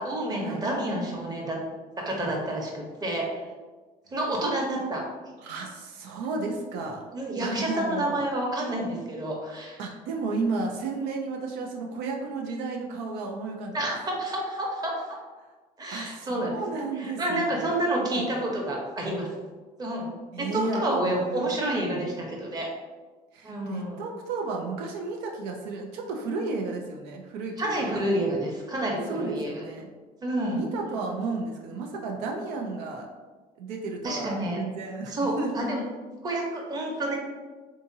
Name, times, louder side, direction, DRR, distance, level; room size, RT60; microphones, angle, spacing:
voice 1, 0.0-1.6 2.0-3.3 4.1-5.0 7.1-9.8 13.7-14.9 15.8-16.6 17.0-19.3 19.8-20.1 20.4-22.7 23.4-24.0 27.6-29.5 30.2-30.6 34.0-34.6 35.1-35.8 36.2-37.2, right 1 dB, 25° right, -1 dB, 0.9 m, -29 dB
voice 2, 5.4-7.0 7.4-8.2 9.8-13.8 15.9-17.7 18.1-18.5 20.3-21.4 23.3-28.0 29.1-29.9 30.5-33.1 33.6-35.5, right 3 dB, 85° right, 1 dB, 0.5 m, -33 dB
3.7 x 2.8 x 2.7 m, 1.3 s
cardioid pair, 105°, 16 cm